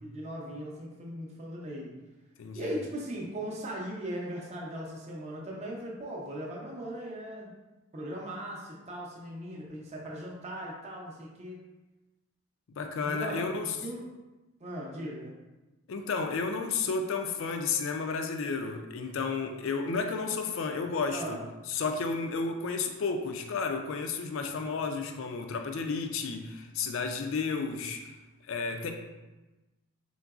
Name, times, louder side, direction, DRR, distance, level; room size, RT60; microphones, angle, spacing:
voice 1, 0.0-1.9 2.6-7.5 7.9-11.6 13.0-14.1 14.6-15.4 21.1-21.4, right 1 dB, 30° right, -3 dB, 0.6 m, -38 dB
voice 2, 2.4-2.7 12.8-13.8 15.9-21.4 21.7-28.1 28.4-28.9, left 4 dB, 60° left, 5 dB, 0.4 m, -32 dB
3.8 x 3.8 x 2.3 m, 1.1 s
head